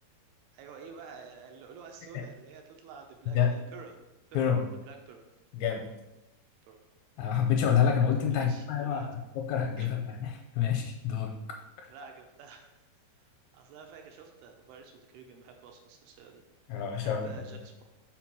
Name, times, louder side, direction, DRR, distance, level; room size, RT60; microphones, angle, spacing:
voice 1, 0.5-4.0 4.3-4.5 4.9-5.2 6.7-6.8 8.3-9.1 9.8-9.9 11.9-12.8 13.2-16.4 16.7-17.8, right 6 dB, 80° right, 3 dB, 2.5 m, -50 dB
voice 2, 5.5-5.9 7.2-9.0 9.4-11.3 11.8-11.9 16.7-17.3, left 8 dB, 85° left, 3 dB, 2.3 m, -27 dB
5.9 x 4.2 x 6.1 m, 0.99 s
omnidirectional pair, 4.8 m